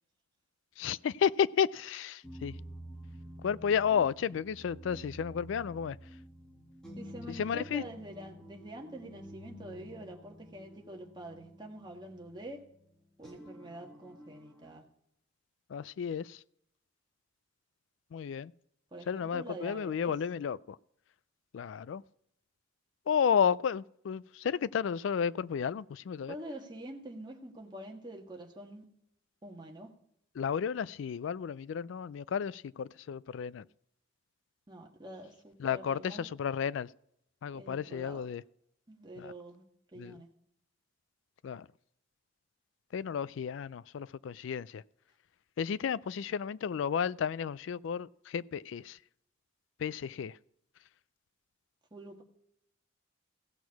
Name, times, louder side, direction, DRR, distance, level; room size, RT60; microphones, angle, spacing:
voice 1, 0.8-2.6 3.4-6.0 7.3-7.8 15.7-16.4 18.1-18.5 19.1-20.8 21.5-22.0 23.1-26.3 30.4-33.6 35.6-36.9 37.4-38.4 39.2-39.3 40.0-40.2 41.4-41.7 42.9-44.8 45.6-49.0 49.8-50.4, left 7 dB, 75° left, 0.3 m, -32 dB
sound 1, 2.2-14.8, equal, 5° left, 2.3 m, -50 dB
voice 2, 7.0-12.6 13.2-14.8 18.9-20.1 26.3-28.8 29.4-29.9 34.7-36.3 37.5-38.2 38.9-39.6 39.9-40.3 51.9-52.2, right 1 dB, 25° right, 1.5 m, -46 dB
16.5 x 6.2 x 4.7 m
head